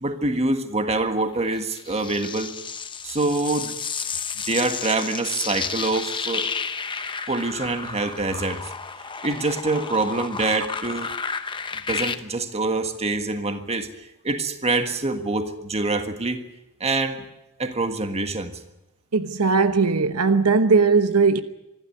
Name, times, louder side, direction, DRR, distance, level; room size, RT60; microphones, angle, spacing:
voice 1, 0.0-2.5 3.0-3.8 4.5-6.5 7.3-8.7 9.2-11.2 11.9-13.9 14.2-16.4 16.8-17.2 17.6-18.6, right 2 dB, 30° right, 1.6 m, -25 dB
sound 1, 1.5-12.1, left 5 dB, 20° left, 0.9 m, -32 dB
voice 2, 19.1-21.4, right 4 dB, 85° right, 1.1 m, -18 dB
25.0 x 12.0 x 9.8 m
head